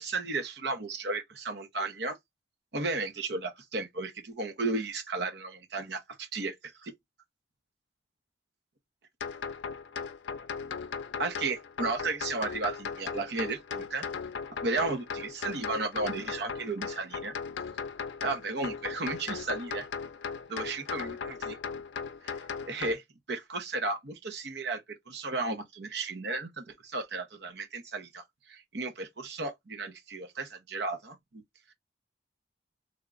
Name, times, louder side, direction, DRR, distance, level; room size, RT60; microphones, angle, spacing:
voice 1, 0.0-2.2 2.7-6.9 11.2-14.1 14.6-17.3 18.2-19.9 20.5-21.6 22.2-23.0 23.3-31.4, right 3 dB, 60° right, 0.8 m, -34 dB
sound 1, 9.2-22.9, left 5 dB, 75° left, 0.5 m, -37 dB
3.5 x 2.2 x 3.7 m
head